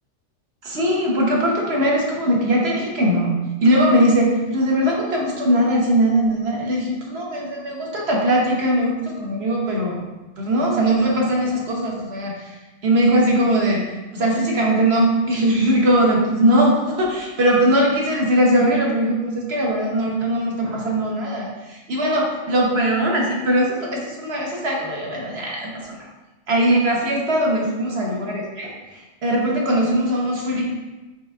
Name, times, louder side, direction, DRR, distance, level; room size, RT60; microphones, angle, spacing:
voice 1, 0.6-10.1 10.4-26.0 26.5-30.6, right 1 dB, 55° right, -2 dB, 1.1 m, -20 dB
5.2 x 4.3 x 2.3 m, 1.1 s
omnidirectional pair, 1.4 m